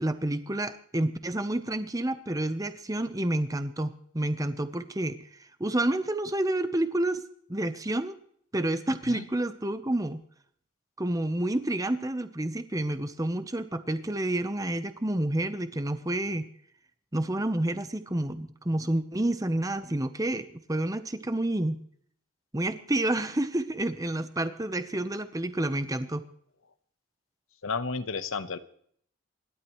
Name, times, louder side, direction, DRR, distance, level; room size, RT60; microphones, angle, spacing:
voice 1, 0.0-5.2 5.6-7.2 7.5-8.2 8.5-10.2 11.0-16.5 17.1-21.8 22.5-26.2, right 1 dB, 15° right, 10 dB, 0.9 m, -29 dB
voice 2, 27.6-28.6, left 4 dB, 80° left, 11 dB, 1.0 m, -32 dB
28.0 x 12.0 x 3.1 m, 0.63 s
head